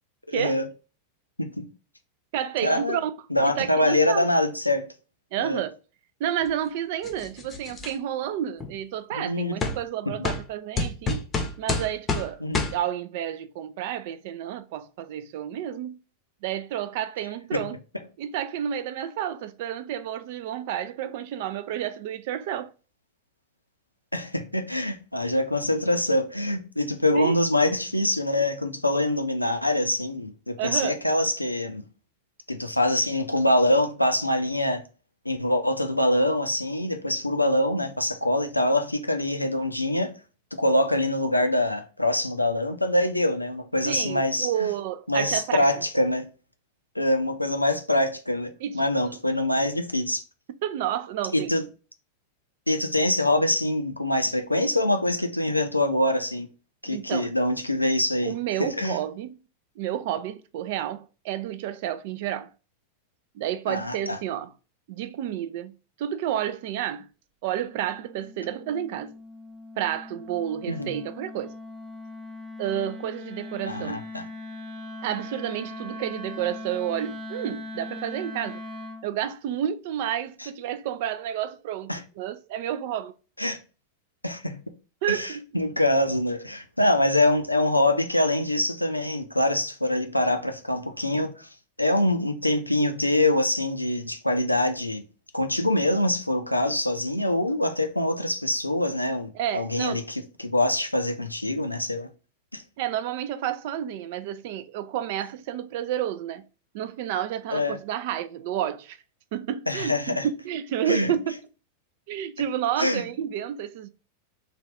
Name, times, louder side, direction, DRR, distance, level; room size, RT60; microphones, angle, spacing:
voice 1, 0.3-0.7 1.4-1.7 2.6-3.0 3.3-4.9 5.4-5.6 9.1-9.6 10.1-10.2 12.4-12.7 17.5-17.7 24.1-31.8 32.5-34.8 35.3-40.1 40.5-44.7 45.1-46.3 47.0-50.2 51.3-51.6 52.7-56.5 56.8-58.3 58.6-59.0 63.7-64.2 70.7-71.0 73.7-74.3 81.9-82.0 83.4-83.6 84.2-84.6 85.1-91.5 91.8-95.0 95.3-102.1 102.5-102.6 107.5-107.8 109.7-110.3 110.9-111.1 112.8-113.0, left 1 dB, 85° left, 0.4 m, -24 dB
voice 2, 2.3-3.1 3.4-4.3 5.3-5.7 6.2-11.2 11.6-12.4 12.7-16.0 16.4-17.8 18.2-22.7 27.1-27.4 30.6-31.0 43.8-45.7 48.6-49.2 50.6-51.5 56.9-57.3 58.2-59.4 59.8-62.5 63.3-64.5 64.9-65.7 66.0-67.1 67.4-69.1 69.8-71.5 72.6-74.0 75.0-78.6 79.0-83.1 85.0-85.4 99.3-100.0 102.8-106.5 106.7-109.0 109.3-111.4 112.1-113.9, right 10 dB, 50° right, 0.3 m, -30 dB
sound 1, 7.0-7.9 8.6-8.7 9.6-9.8 10.2-10.4 10.8-12.3 12.5-12.7, left 3 dB, 20° left, 0.7 m, -27 dB
Wind instrument woodwind instrument, 67.6-79.1, left 2 dB, 25° right, 0.7 m, -40 dB
3.3 x 2.4 x 3.6 m
figure-of-eight pair, 90°, 0 cm